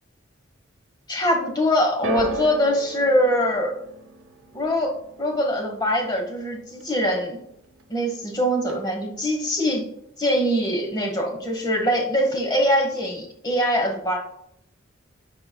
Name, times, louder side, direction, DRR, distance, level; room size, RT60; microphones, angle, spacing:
voice 1, 1.1-3.8 4.5-7.4 7.9-9.9 10.2-14.2, equal, 20° left, 2 dB, 1.1 m, -23 dB
sound 1, 2.0-8.3 8.6-9.2 10.0-10.1, right 5 dB, 85° right, 0.6 m, -36 dB
9.8 x 4.3 x 2.2 m, 0.73 s
head